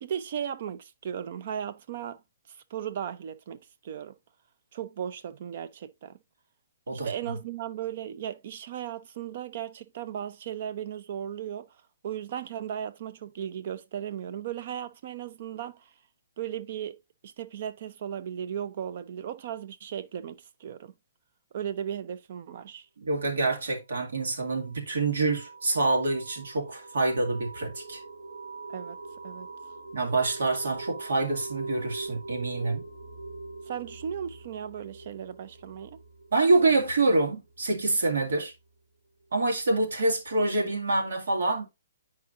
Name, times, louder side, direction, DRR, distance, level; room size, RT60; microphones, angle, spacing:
voice 1, 0.0-2.2 2.7-4.2 4.7-6.2 6.9-11.7 12.0-15.8 16.4-20.9 21.5-22.9 28.7-29.0 29.2-29.5 33.7-36.0, right 9 dB, 35° right, 0.5 m, -36 dB
voice 2, 23.0-28.0 29.9-32.8 36.3-38.5 39.3-41.7, right 2 dB, 85° right, 2.0 m, -26 dB
sound 1, 24.1-38.5, right 3 dB, 55° right, 2.9 m, -43 dB
9.8 x 4.7 x 2.6 m
hypercardioid pair, 175°, 0 cm